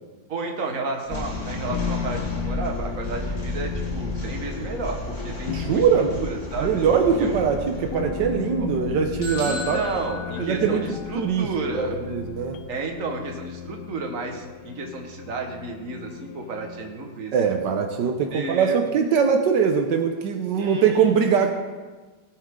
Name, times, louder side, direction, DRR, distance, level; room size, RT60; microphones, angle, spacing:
voice 1, 0.3-6.8 7.2-7.4 8.6-8.7 9.4-12.0 12.7-17.3 17.7-17.8 18.3-18.8 20.6-21.2, right 3 dB, 50° right, 2 dB, 1.8 m, -32 dB
sound 1, 1.0-12.3, equal, 25° left, 2.0 m, -34 dB
sound 2, 1.1-17.6, left 11 dB, 75° left, 1.1 m, -36 dB
voice 2, 5.5-6.2 6.6-9.8 10.4-10.8 11.1-11.5 11.7-12.6 17.3-21.5, right 6 dB, 80° right, 5 dB, 1.5 m, -22 dB
sound 3, 9.2-11.1, left 2 dB, 50° left, 4.1 m, -35 dB
17.5 x 9.2 x 3.7 m, 1.3 s
omnidirectional pair, 1.9 m